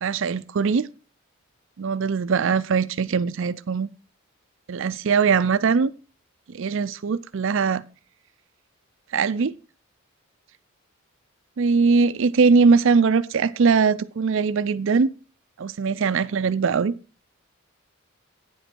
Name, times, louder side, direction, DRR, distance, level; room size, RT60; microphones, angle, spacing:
voice 1, 0.0-0.9 1.8-3.9 4.7-5.9 6.5-7.8 9.1-9.5 11.6-15.1 15.6-16.9, right 5 dB, 60° right, 0.4 m, -21 dB
9.7 x 8.0 x 4.5 m
head